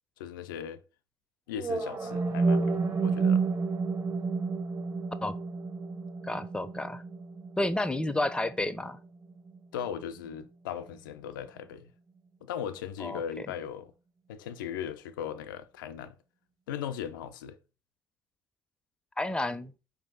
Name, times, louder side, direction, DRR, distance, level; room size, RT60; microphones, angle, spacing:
voice 1, 0.2-0.8 1.5-3.4 9.7-11.9 12.4-13.9 14.3-16.2 16.7-17.6, left 9 dB, 75° left, 0.4 m, -38 dB
sound 1, 1.6-9.6, right 4 dB, 35° right, 0.8 m, -31 dB
voice 2, 6.2-7.0 7.6-9.0 13.0-13.2 19.2-19.7, left 1 dB, 10° left, 0.5 m, -30 dB
4.6 x 2.6 x 3.8 m
figure-of-eight pair, 50°, 11 cm